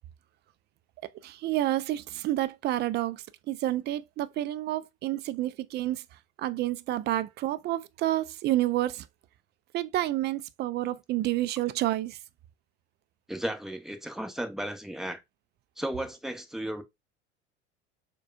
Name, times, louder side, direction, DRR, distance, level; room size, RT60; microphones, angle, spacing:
voice 1, 1.2-6.0 6.4-9.1 9.7-12.2, right 15 dB, 30° right, 0.4 m, -29 dB
voice 2, 13.3-15.2 15.8-16.8, right 1 dB, ahead, 0.8 m, -34 dB
6.4 x 2.3 x 2.3 m
figure-of-eight pair, 70°, 34 cm